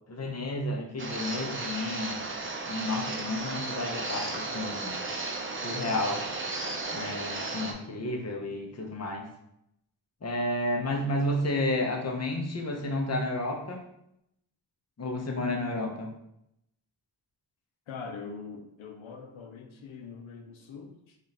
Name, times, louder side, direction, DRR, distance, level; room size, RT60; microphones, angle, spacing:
voice 1, 0.1-2.3 2.7-5.0 5.6-6.2 6.9-9.3 10.2-13.8 15.0-16.1, left 1 dB, 35° left, 1 dB, 0.7 m, -31 dB
sound 1, 1.0-7.7, right 3 dB, 30° right, 0.5 m, -34 dB
voice 2, 17.9-21.2, left 5 dB, 85° left, 3 dB, 0.6 m, -43 dB
4.8 x 2.5 x 2.8 m, 0.79 s
wide cardioid pair, 80°, 46 cm